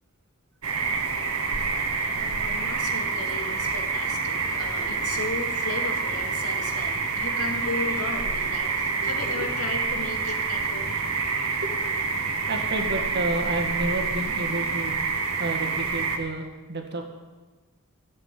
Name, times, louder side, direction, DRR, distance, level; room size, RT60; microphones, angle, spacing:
sound 1, 0.6-16.2, right 4 dB, 70° right, 1.7 m, -27 dB
voice 1, 2.2-11.0, left 3 dB, 85° left, 3 dB, 2.3 m, -35 dB
voice 2, 9.0-9.5 11.2-12.1 12.4-15.0 15.4-17.0, right 2 dB, 50° right, 2 dB, 2.0 m, -31 dB
15.5 x 7.9 x 9.2 m, 1.2 s
head